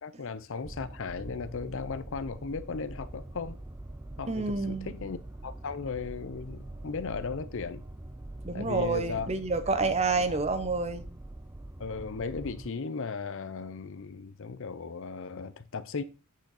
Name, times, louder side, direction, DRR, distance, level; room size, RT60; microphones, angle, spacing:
voice 1, 0.0-3.6 4.2-5.2 5.4-7.8 8.5-9.3 9.8-10.4 11.8-16.0, left 5 dB, 60° left, 0.6 m, -36 dB
sound 1, 0.6-12.7, right 1 dB, 10° right, 0.4 m, -44 dB
voice 2, 4.3-4.9 8.4-11.1, right 3 dB, 30° right, 0.8 m, -29 dB
8.3 x 6.4 x 4.1 m
head